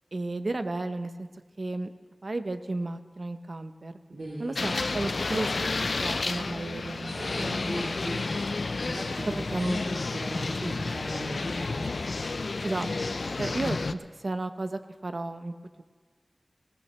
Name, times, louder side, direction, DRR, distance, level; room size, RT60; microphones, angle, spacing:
voice 1, 0.1-1.3 1.6-1.9 2.2-3.9 4.4-5.7 6.0-7.5 9.5-9.8 10.6-10.8 12.6-15.8, right 2 dB, 65° right, 9 dB, 0.7 m, -33 dB
voice 2, 4.1-4.9 7.0-8.6 8.8-11.9, right 1 dB, 80° right, -7 dB, 2.9 m, -39 dB
sound 1, 4.6-13.9, left 3 dB, 80° left, 0.4 m, -31 dB
19.5 x 17.5 x 3.2 m, 1.5 s
wide cardioid pair, 70°, 0 cm